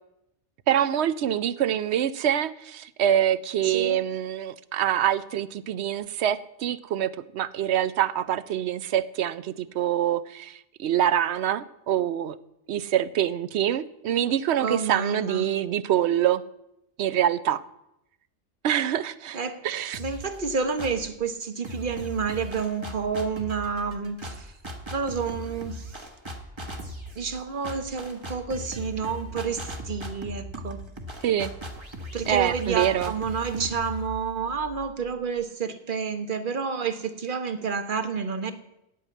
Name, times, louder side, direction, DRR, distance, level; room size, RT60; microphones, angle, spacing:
voice 1, 0.7-12.4 12.7-16.4 17.0-17.6 18.6-19.4 19.6-20.0 31.2-31.5 32.3-33.1, right 10 dB, 70° right, 16 dB, 0.8 m, -25 dB
voice 2, 3.6-4.0 14.6-15.4 19.3-19.6 20.0-24.5 24.9-26.0 27.2-30.8 32.1-38.5, right 5 dB, 50° right, 9 dB, 1.1 m, -29 dB
sound 1, 19.9-21.2 21.6-35.3, equal, 25° right, 1.2 m, -39 dB
9.7 x 8.5 x 8.4 m, 0.85 s
omnidirectional pair, 1.2 m